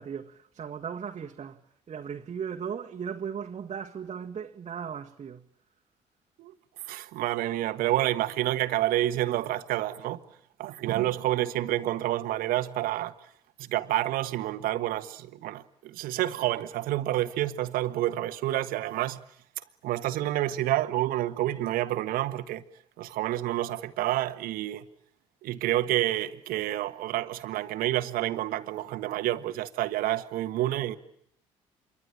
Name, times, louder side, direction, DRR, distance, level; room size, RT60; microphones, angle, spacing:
voice 1, 0.0-5.5, right 7 dB, 45° right, 1.7 m, -37 dB
voice 2, 6.9-10.2 10.6-13.1 13.6-19.2 19.8-22.6 23.0-24.8 25.4-31.0, right 14 dB, 65° right, 1.5 m, -29 dB
27.0 x 23.5 x 8.8 m
hypercardioid pair, 50°, 16 cm